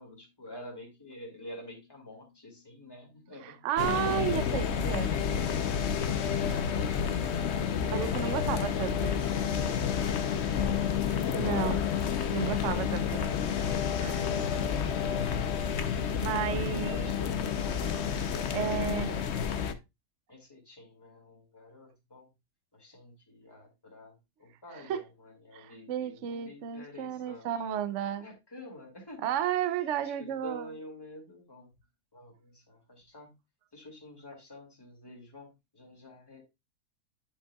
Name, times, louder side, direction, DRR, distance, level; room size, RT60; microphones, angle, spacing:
voice 1, 0.0-3.7 6.4-6.8 10.6-11.0 16.9-17.4 18.4-19.2 20.3-22.3 22.7-27.8 28.2-29.3 30.0-31.7 32.1-33.3 33.7-36.4, left 1 dB, 15° left, 2.3 m, -48 dB
voice 2, 3.4-5.1 7.9-9.2 11.3-11.8 12.3-13.3 14.0-14.3 16.2-17.0 18.5-19.1 24.7-25.0 25.5-28.3 29.2-30.7, right 9 dB, 60° right, 0.9 m, -32 dB
sound 1, 3.8-19.7, left 7 dB, 55° left, 0.8 m, -30 dB
10.0 x 5.4 x 2.3 m
omnidirectional pair, 1.7 m